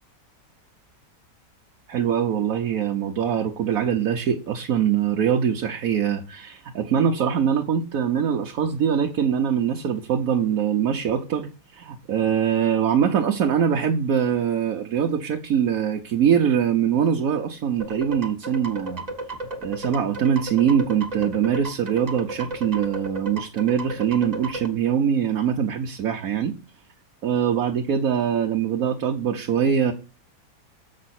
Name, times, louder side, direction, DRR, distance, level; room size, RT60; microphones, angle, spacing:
voice 1, 1.9-19.0 19.6-26.5 27.2-29.9, right 8 dB, 60° right, 1.2 m, -23 dB
sound 1, 17.8-24.7, right 2 dB, 25° right, 1.2 m, -33 dB
7.2 x 6.4 x 4.3 m
omnidirectional pair, 1.8 m